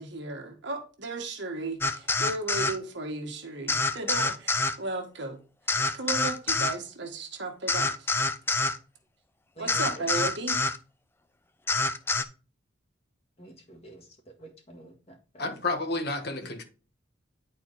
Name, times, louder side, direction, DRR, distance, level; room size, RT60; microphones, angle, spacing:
voice 1, 0.0-5.4 5.9-8.1 9.6-10.6, right 3 dB, 60° right, 1.6 m, -35 dB
sound 1, 1.8-2.8 3.7-4.8 5.7-6.8 7.7-8.8 9.7-10.8 11.7-12.2, left 3 dB, 10° left, 0.4 m, -26 dB
voice 2, 9.6-10.1 13.4-14.0 14.4-15.5, right 3 dB, 30° left, 1.7 m, -48 dB
voice 3, 15.4-16.6, left 3 dB, 50° left, 1.4 m, -30 dB
10.5 x 4.4 x 4.1 m
head